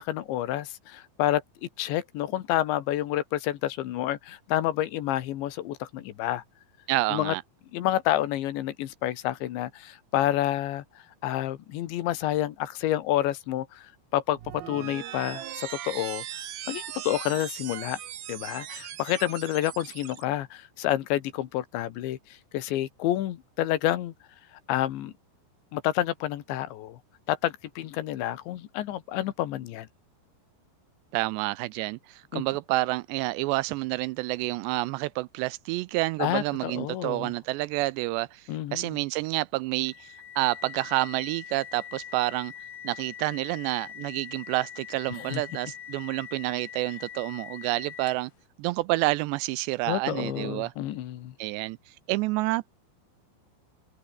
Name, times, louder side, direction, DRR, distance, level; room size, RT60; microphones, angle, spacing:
voice 1, 0.0-1.4 1.8-6.4 7.1-7.4 7.7-10.8 11.2-18.0 18.3-24.1 24.7-25.1 25.7-27.0 27.3-29.9 32.3-32.4 36.2-37.3 38.5-39.0 45.3-45.4 49.9-51.4, left 13 dB, 80° left, 3.8 m, -29 dB
voice 2, 6.9-7.4 31.1-42.5 42.8-48.3 48.6-50.7 51.4-52.7, right 20 dB, 80° right, 2.6 m, -29 dB
sound 1, 14.3-20.2, right 12 dB, 65° right, 3.1 m, -39 dB
sound 2, 39.8-48.4, left 9 dB, 55° left, 2.0 m, -43 dB
omnidirectional pair, 5.2 m